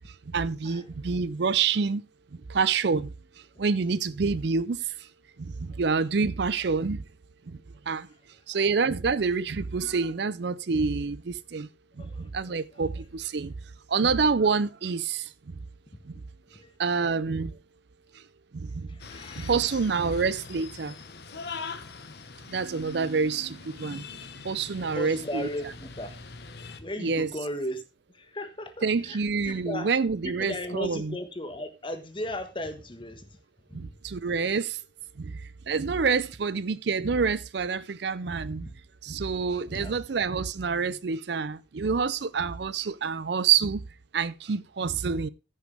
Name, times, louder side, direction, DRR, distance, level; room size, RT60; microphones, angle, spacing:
voice 1, 0.3-2.0 2.5-3.1 3.6-4.8 5.4-7.0 7.5-7.6 7.9-8.1 8.5-11.7 12.0-13.5 13.9-15.3 16.1-16.2 16.8-17.6 18.5-18.9 19.4-20.9 22.5-24.1 24.4-25.5 27.0-27.3 28.8-31.2 33.7-34.8 35.2-35.3 35.7-38.7 39.0-43.8 44.1-45.3, right 5 dB, 55° right, 0.5 m, -27 dB
voice 2, 18.9-19.5 24.9-26.2 26.8-27.8 28.1-29.9 30.2-33.4 33.7-33.9 38.6-38.7 39.7-40.0, left 1 dB, 25° left, 1.4 m, -36 dB
sound 1, 19.0-26.8, left 4 dB, 55° left, 1.1 m, -42 dB
15.0 x 6.3 x 3.4 m
head